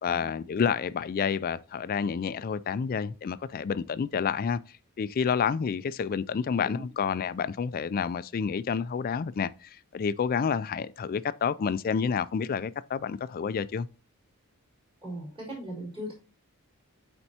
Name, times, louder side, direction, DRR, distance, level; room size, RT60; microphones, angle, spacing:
voice 1, 0.0-4.6 5.0-13.9, left 6 dB, 40° left, 0.3 m, -29 dB
voice 2, 15.0-16.1, equal, 25° right, 4.1 m, -38 dB
12.5 x 4.4 x 2.8 m
head